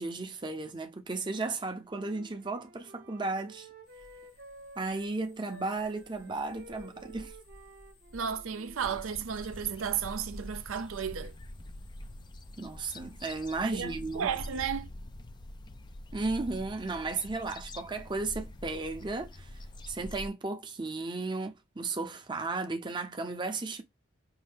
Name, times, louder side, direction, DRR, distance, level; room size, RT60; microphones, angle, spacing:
voice 1, 0.0-3.7 4.8-7.4 12.6-14.3 16.1-23.8, right 3 dB, 20° right, 0.6 m, -34 dB
Wind instrument woodwind instrument, 1.4-5.1 5.4-9.5, right 1 dB, 50° right, 0.9 m, -52 dB
sound 1, 3.9-14.5, equal, 85° left, 2.3 m, -54 dB
voice 2, 8.1-11.3 13.6-14.9, right 7 dB, 75° right, 0.5 m, -33 dB
sound 2, 8.8-20.3, left 1 dB, 20° left, 0.3 m, -45 dB
5.3 x 2.7 x 3.3 m
head